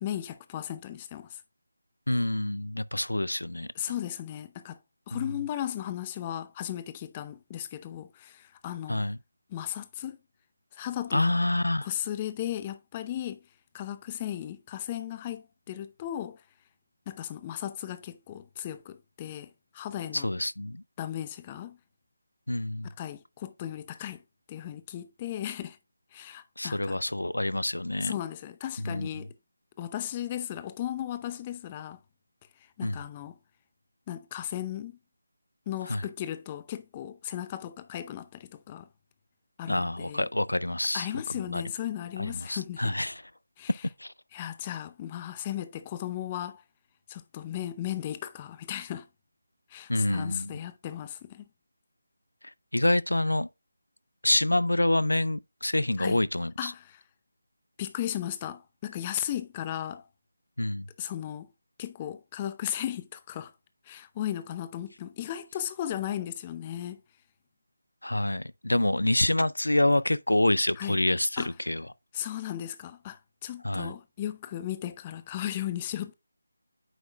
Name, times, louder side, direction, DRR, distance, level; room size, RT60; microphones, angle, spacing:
voice 1, 0.0-1.4 3.7-4.8 5.1-9.1 9.5-10.2 10.7-11.3 11.8-13.4 13.7-16.4 17.1-20.3 21.0-21.8 23.0-24.2 24.5-25.8 26.1-27.0 28.0-29.3 29.8-32.0 32.8-33.4 34.1-34.9 35.7-38.9 39.6-40.3 40.9-43.0 43.6-43.9 44.3-46.6 47.1-49.1 49.7-51.4 56.0-56.2 56.6-57.0 57.8-60.0 61.0-61.5 61.8-63.5 63.9-67.0 70.8-71.0 71.4-71.5 72.1-76.1, left 11 dB, 20° left, 0.6 m, -36 dB
voice 2, 2.1-3.7 5.1-5.2 8.9-9.2 11.1-11.9 20.1-20.8 22.5-22.9 26.6-28.1 28.8-29.1 32.8-33.0 35.9-36.0 39.7-41.1 41.5-41.6 42.3-43.2 44.0-44.1 49.9-50.5 52.7-53.5 54.2-56.7 60.6-60.9 68.0-71.9 73.6-73.9, left 1 dB, 80° left, 0.4 m, -27 dB
9.2 x 6.1 x 2.3 m
figure-of-eight pair, 160°, 0 cm